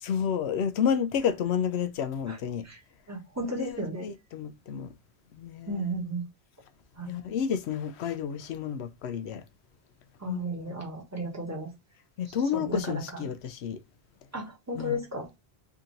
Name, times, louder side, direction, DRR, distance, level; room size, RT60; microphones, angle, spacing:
voice 1, 0.0-2.7 3.6-4.9 5.3-6.0 7.0-9.4 10.3-10.7 12.2-13.8 14.8-15.0, left 7 dB, 80° left, 0.9 m, -30 dB
voice 2, 3.1-4.1 5.7-6.2 7.0-7.2 10.2-11.7 12.3-13.3 14.3-15.3, right 1 dB, 15° right, 1.1 m, -34 dB
3.5 x 2.9 x 3.8 m
omnidirectional pair, 1.1 m